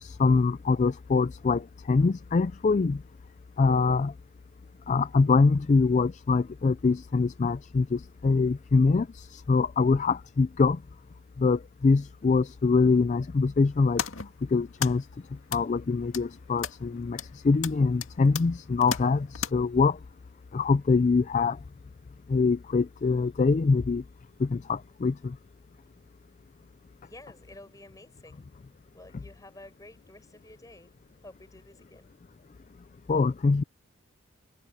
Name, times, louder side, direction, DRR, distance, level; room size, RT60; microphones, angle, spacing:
voice 1, 0.0-3.0 3.6-4.1 4.9-10.8 11.4-14.0 14.5-15.1 15.5-20.0 20.5-21.6 22.3-24.0 24.4-25.4 33.1-33.6, left 4 dB, 35° left, 0.3 m, -24 dB
sound 1, 13.6-19.5, left 7 dB, 85° left, 2.1 m, -37 dB
voice 2, 27.0-28.4 28.9-30.9 31.2-32.1, left 1 dB, 15° left, 6.0 m, -50 dB
head